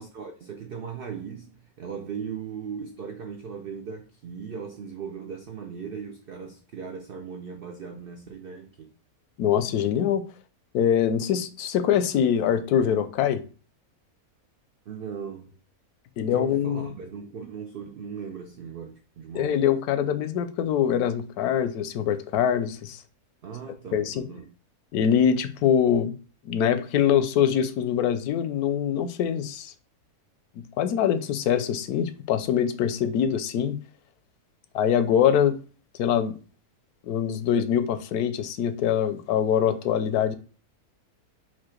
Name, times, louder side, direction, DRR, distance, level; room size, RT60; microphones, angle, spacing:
voice 1, 0.0-8.9 14.9-15.5 16.3-19.7 23.4-24.5, right 6 dB, 80° right, 0.5 m, -38 dB
voice 2, 9.4-10.2 10.7-13.4 16.2-16.9 19.3-23.0 23.9-24.3 24.9-26.1 26.4-29.7 30.8-33.8 34.7-35.6 36.0-36.3 37.0-40.4, left 9 dB, 85° left, 1.1 m, -23 dB
4.4 x 2.4 x 4.4 m
omnidirectional pair, 1.6 m